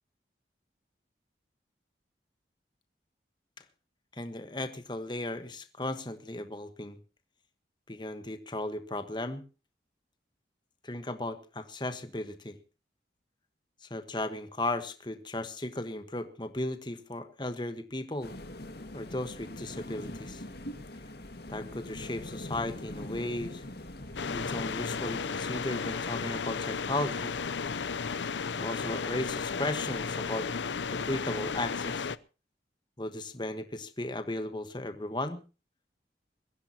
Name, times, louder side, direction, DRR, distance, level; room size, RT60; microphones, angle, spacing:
voice 1, 4.1-7.0 7.9-9.4 10.8-12.6 13.8-18.3 18.9-20.4 21.5-23.6 24.3-27.3 28.6-30.5 30.9-32.1 33.0-35.4, left 1 dB, 25° left, 9 dB, 1.3 m, -36 dB
sound 1, 18.2-25.2, left 1 dB, 65° left, 2.0 m, -42 dB
sound 2, 24.2-32.2, left 5 dB, 90° left, 0.7 m, -34 dB
22.0 x 15.5 x 2.9 m, 0.33 s
head